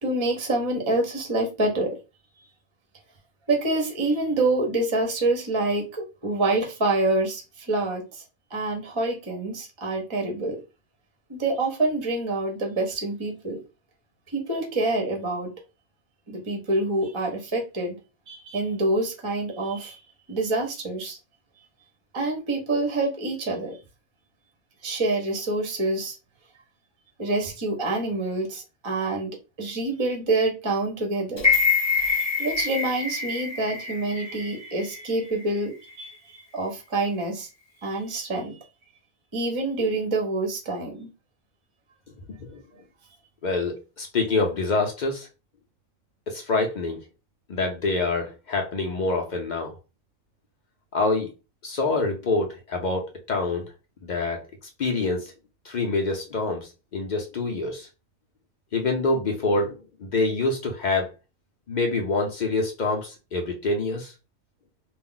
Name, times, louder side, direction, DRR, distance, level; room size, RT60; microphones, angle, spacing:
voice 1, 0.0-1.9 3.5-8.2 8.5-10.6 11.3-13.6 14.3-15.5 16.3-18.0 18.3-20.0 20.3-21.2 22.1-23.8 24.8-26.2 27.2-29.3 29.6-31.5 32.1-36.2 36.5-37.5 37.8-38.5 39.3-41.1, right 2 dB, 30° right, 1 dB, 0.5 m, -26 dB
sound 1, 31.4-35.5 35.9-36.0, left 5 dB, 25° left, 0.6 m, -26 dB
voice 2, 43.4-45.3 46.3-47.0 47.5-49.8 50.9-51.3 51.6-53.7 54.0-54.4 54.8-55.3 55.6-57.9 58.7-61.1 61.7-64.1, left 3 dB, 75° left, 2 dB, 0.4 m, -26 dB
2.4 x 2.0 x 3.7 m, 0.29 s
omnidirectional pair, 1.4 m